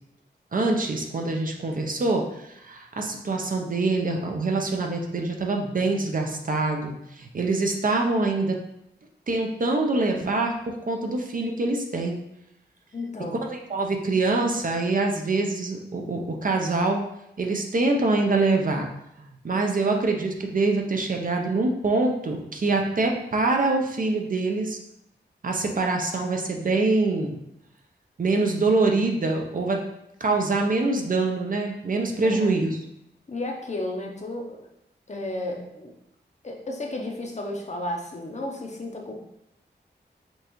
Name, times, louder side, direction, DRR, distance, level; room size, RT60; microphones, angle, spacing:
voice 1, 0.5-8.6 9.3-12.2 13.4-17.0 17.4-18.9 19.2-24.8 25.4-27.4 28.2-29.8 30.2-32.8, right 3 dB, 50° right, 2 dB, 0.6 m, -25 dB
voice 2, 12.9-13.4 32.2-32.6 33.3-34.6 35.1-35.9 36.4-39.2, left 1 dB, 40° left, 1 dB, 0.7 m, -33 dB
5.2 x 2.4 x 3.0 m, 0.80 s
wide cardioid pair, 80°, 18 cm